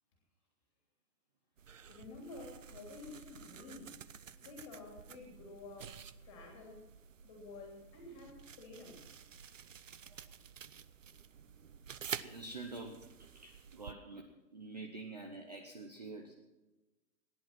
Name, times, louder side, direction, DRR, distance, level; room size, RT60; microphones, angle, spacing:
sound 1, 1.6-13.9, right 7 dB, 50° right, 0.6 m, -50 dB
voice 1, 1.9-4.0 4.4-6.9 7.2-9.0 9.3-9.4, left 3 dB, 15° left, 0 dB, 3.1 m, -51 dB
voice 2, 10.0-10.4 12.1-13.1 13.3-16.3, right 3 dB, 25° right, 2 dB, 0.9 m, -47 dB
17.5 x 10.5 x 6.0 m, 1.1 s
hypercardioid pair, 175°, 49 cm